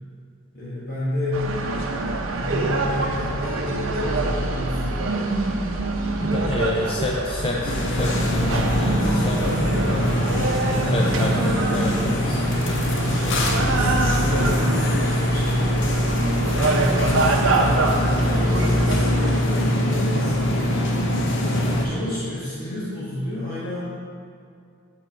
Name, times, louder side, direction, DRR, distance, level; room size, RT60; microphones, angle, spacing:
voice 1, 0.5-1.4 2.3-5.1 9.6-11.3 12.2-16.1 16.6-21.1 21.8-23.8, left 1 dB, 45° left, -10 dB, 1.2 m, -31 dB
sound 1, 1.3-19.4, right 2 dB, 75° right, 0.7 m, -25 dB
voice 2, 6.2-10.2 10.9-12.5 18.5-18.8 21.5-21.8, left 1 dB, 25° left, -1 dB, 0.4 m, -29 dB
sound 2, 7.7-21.9, left 1 dB, 60° left, 0.8 m, -23 dB
8.4 x 4.4 x 4.5 m, 2.3 s
head